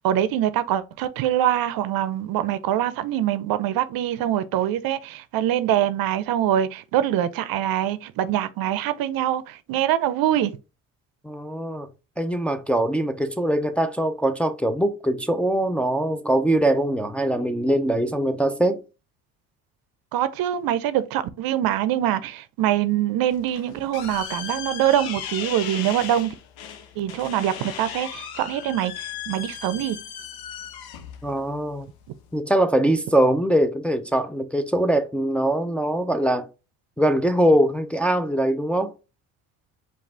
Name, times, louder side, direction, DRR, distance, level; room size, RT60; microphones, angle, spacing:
voice 1, 0.0-10.5 20.1-26.3 27.0-30.0, right 11 dB, 60° right, 0.6 m, -24 dB
voice 2, 11.2-11.9 12.2-18.8 31.2-31.9 32.3-36.5 37.0-38.9, right 1 dB, 5° left, 0.5 m, -22 dB
sound 1, 23.3-32.4, left 8 dB, 65° left, 0.9 m, -37 dB
4.7 x 2.5 x 3.3 m
hypercardioid pair, 70°, 40 cm